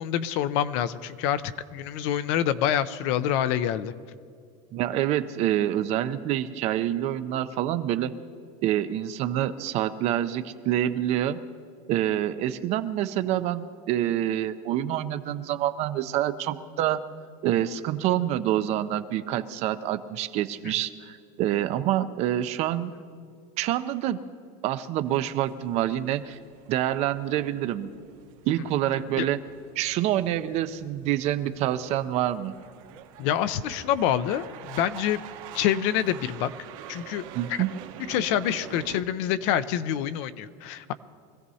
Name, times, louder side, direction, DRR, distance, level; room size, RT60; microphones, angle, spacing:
voice 1, 0.0-3.9 20.6-20.7 29.2-29.3 33.2-35.2 35.5-36.5 36.9-37.2 37.5-37.6 38.1-40.9, left 10 dB, 55° left, 13 dB, 0.6 m, -26 dB
voice 2, 4.7-8.1 8.6-11.4 11.9-17.0 17.4-22.9 23.6-24.2 24.6-26.4 26.7-27.9 28.5-29.4 29.8-32.5 37.3-37.7, right 12 dB, 35° right, 11 dB, 0.5 m, -27 dB
sound 1, 25.1-39.0, right 10 dB, 65° right, 1.2 m, -46 dB
24.5 x 15.5 x 2.8 m, 2.2 s
supercardioid pair, 155°, 18 cm